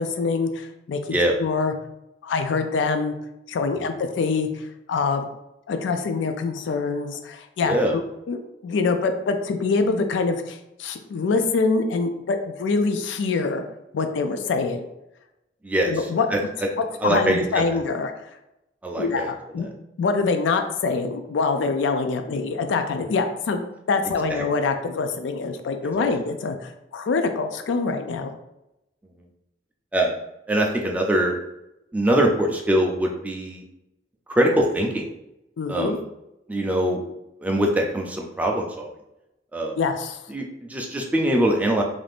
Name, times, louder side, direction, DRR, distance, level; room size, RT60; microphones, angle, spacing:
voice 1, 0.0-1.7 2.2-3.1 3.5-4.6 4.9-5.3 5.7-8.0 8.3-13.6 13.9-14.9 15.9-16.3 16.8-18.1 19.0-19.7 20.0-23.6 23.9-28.3 35.6-36.0 39.8-40.2, left 4 dB, 80° left, 7 dB, 0.3 m, -25 dB
voice 2, 7.6-8.0 15.6-15.9 16.3-16.4 17.0-17.6 18.8-19.3 24.3-24.4 26.0-26.1 29.9-30.1 30.5-31.3 31.9-33.6 34.3-35.0 35.7-36.0 36.5-37.0 37.4-38.9 39.5-39.7 40.3-41.8, right 1 dB, 10° right, 1 dB, 0.3 m, -22 dB
2.5 x 2.4 x 3.3 m, 0.88 s
head